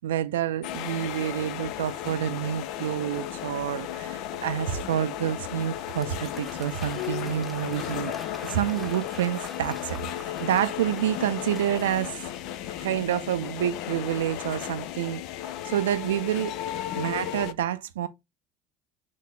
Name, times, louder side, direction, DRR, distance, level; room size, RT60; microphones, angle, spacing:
voice 1, 0.0-8.1 8.4-12.2 12.6-15.2 15.6-16.5 17.0-18.1, right 11 dB, 80° right, 0.3 m, -28 dB
sound 1, 0.6-17.5, left 12 dB, 60° left, 0.4 m, -35 dB
Applause / Crowd, 5.3-13.1, equal, ahead, 1.1 m, -47 dB
4.2 x 2.8 x 3.3 m
hypercardioid pair, 65°, 0 cm